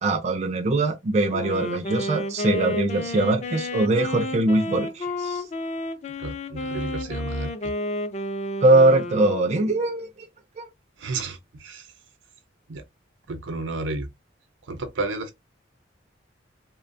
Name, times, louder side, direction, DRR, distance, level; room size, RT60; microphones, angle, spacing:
voice 1, 0.0-5.4 8.6-10.3 10.6-10.7, right 2 dB, 35° right, 0.3 m, -22 dB
Wind instrument woodwind instrument, 1.3-9.9, left 1 dB, 35° left, 0.3 m, -31 dB
voice 2, 6.2-7.7 11.0-11.9 12.7-12.8 13.3-14.1 14.7-15.3, right 2 dB, 85° right, 0.6 m, -31 dB
2.7 x 2.1 x 2.5 m
head